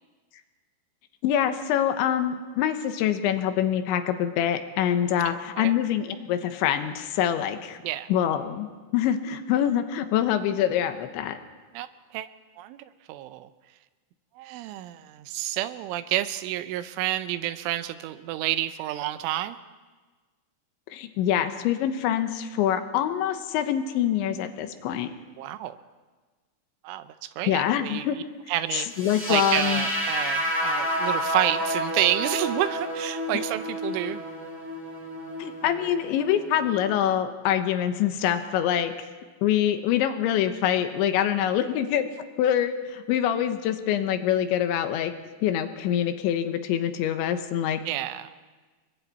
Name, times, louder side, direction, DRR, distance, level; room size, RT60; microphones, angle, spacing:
voice 1, 1.2-7.8 8.1-11.4 20.9-25.1 27.5-28.2 28.7-29.8 35.4-38.9 39.4-42.1 42.4-45.1 45.4-47.8, left 10 dB, 80° left, 8 dB, 3.3 m, -25 dB
voice 2, 5.3-5.7 7.8-8.1 11.7-11.9 12.1-12.3 12.6-12.8 13.1-13.5 14.4-19.6 25.4-25.8 26.8-28.1 28.5-28.9 29.3-34.2 47.9-48.5, right 14 dB, 90° right, 12 dB, 3.3 m, -29 dB
sound 1, 28.9-36.9, equal, 5° left, 5.4 m, -30 dB
29.5 x 22.0 x 4.2 m, 1.3 s
omnidirectional pair, 5.5 m